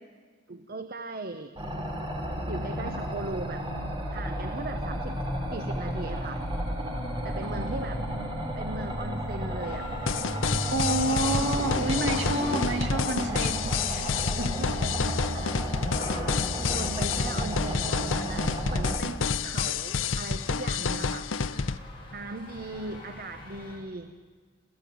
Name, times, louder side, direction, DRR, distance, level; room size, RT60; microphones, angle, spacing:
voice 1, 0.5-1.5 2.5-3.7 4.1-5.2 5.5-6.4 7.2-8.0 8.6-9.9 14.6-15.5 16.7-21.3 22.1-24.2, right 2 dB, 50° right, 9 dB, 1.0 m, -38 dB
sound 1, 1.6-19.0, equal, 25° right, 3.4 m, -33 dB
voice 2, 7.4-8.3 10.7-14.1 14.4-14.7, right 1 dB, 65° right, 4 dB, 2.8 m, -30 dB
sound 2, 9.6-23.7, left 1 dB, 25° left, 7.3 m, -42 dB
sound 3, 10.1-21.8, left 5 dB, 80° left, 0.7 m, -29 dB
27.0 x 15.0 x 9.4 m, 1.5 s
head